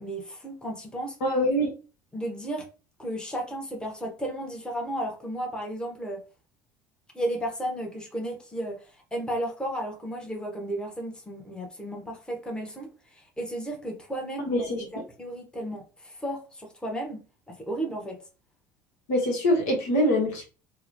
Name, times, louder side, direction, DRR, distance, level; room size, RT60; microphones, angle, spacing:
voice 1, 0.0-1.1 2.1-2.6 3.0-6.2 7.1-17.2 17.5-18.2, right 1 dB, 10° left, 0.9 m, -34 dB
voice 2, 1.2-1.7 14.5-14.8 19.1-20.5, equal, 70° left, 0.9 m, -24 dB
3.0 x 2.1 x 2.6 m
hypercardioid pair, 65°, 10 cm